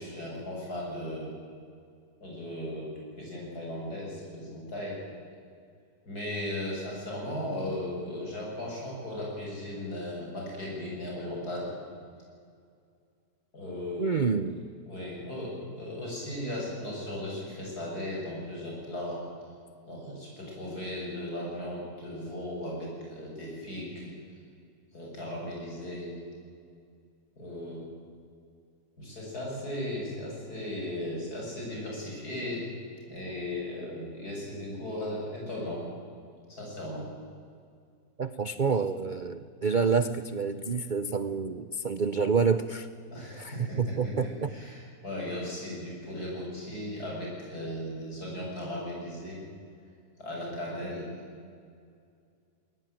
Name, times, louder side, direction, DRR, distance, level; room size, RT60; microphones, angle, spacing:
voice 1, 0.0-1.4 2.2-5.0 6.1-11.7 13.5-14.3 14.9-19.2 19.9-24.1 24.9-26.1 27.4-27.9 29.0-32.7 33.1-35.8 36.5-37.1 43.1-49.4 50.2-51.1, left 1 dB, 55° left, -3 dB, 8.4 m, -37 dB
voice 2, 14.0-14.6 38.2-42.9 43.3-44.5, right 5 dB, 80° right, 12 dB, 0.4 m, -28 dB
21.5 x 19.0 x 9.2 m, 2.3 s
omnidirectional pair, 1.9 m